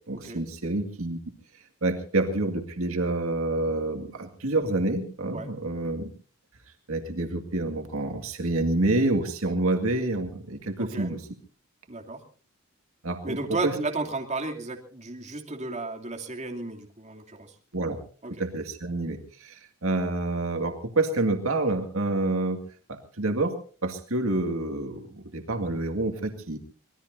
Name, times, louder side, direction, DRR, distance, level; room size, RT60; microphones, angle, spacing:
voice 1, 0.1-1.2 1.8-6.1 6.9-11.2 13.0-13.4 13.6-13.7 17.7-18.0 18.4-22.6 22.9-23.6 23.8-26.6, right 2 dB, 80° right, 5 dB, 2.1 m, -28 dB
voice 2, 10.8-11.1 11.9-12.2 13.2-17.5 18.2-18.4, right 3 dB, 35° right, 2 dB, 2.8 m, -33 dB
25.5 x 19.5 x 2.7 m, 0.41 s
head